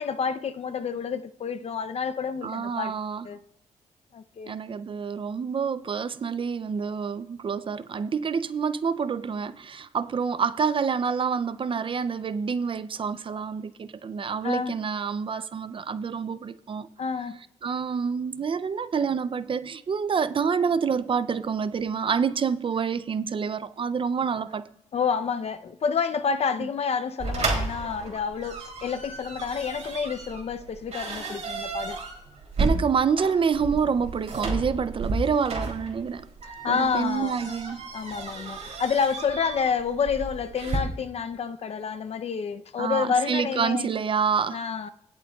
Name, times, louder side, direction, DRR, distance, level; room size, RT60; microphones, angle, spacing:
voice 1, 0.0-2.9 3.2-3.4 4.1-4.6 14.4-14.7 17.0-17.4 24.9-32.0 36.4-37.5 37.9-43.9 44.5-44.9, left 6 dB, 55° left, 0.6 m, -29 dB
voice 2, 2.4-3.3 4.5-16.9 17.6-24.6 32.6-36.3 36.7-37.8 42.8-44.6, right 6 dB, 45° right, 0.5 m, -27 dB
sound 1, 27.2-40.8, right 3 dB, 60° right, 3.0 m, -33 dB
20.0 x 7.7 x 2.3 m
cardioid pair, 100°, 13 cm